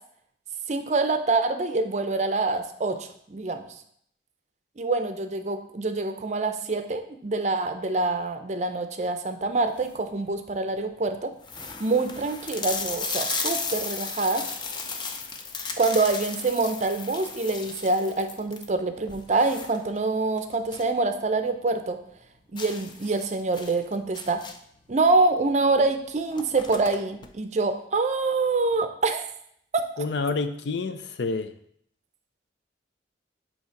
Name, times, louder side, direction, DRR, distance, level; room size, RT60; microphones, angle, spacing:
voice 1, 0.7-3.7 4.8-11.3 11.8-14.5 15.8-22.0 22.5-24.4 24.9-29.2 29.7-29.8, right 3 dB, 40° right, 8 dB, 0.5 m, -25 dB
sound 1, 9.6-10.1 10.7-10.8 11.0-11.1 11.4-21.0 21.3-21.4 21.8-21.9 22.6-24.8 25.7-25.9 26.1-27.3, left 4 dB, 25° left, 0.5 m, -35 dB
voice 2, 30.0-31.5, left 3 dB, 80° left, 9 dB, 0.5 m, -28 dB
8.3 x 2.9 x 4.5 m, 0.68 s
head